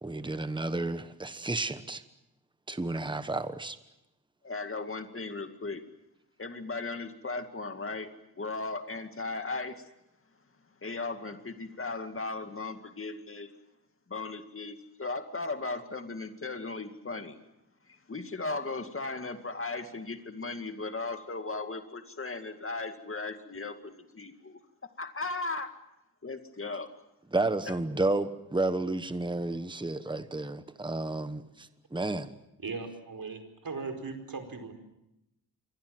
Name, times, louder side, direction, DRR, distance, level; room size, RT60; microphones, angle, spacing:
voice 1, 0.0-2.0 2.7-3.8 27.3-32.3, right 2 dB, 10° right, 1.2 m, -31 dB
voice 2, 4.4-5.8 6.4-8.1 8.4-9.9 10.8-13.5 14.1-17.4 17.9-24.6 25.0-25.7 26.2-26.9 27.7-27.8, left 3 dB, 35° left, 2.3 m, -37 dB
voice 3, 32.6-34.7, right 4 dB, 65° right, 4.9 m, -38 dB
27.5 x 23.0 x 7.8 m
wide cardioid pair, 135°, 38 cm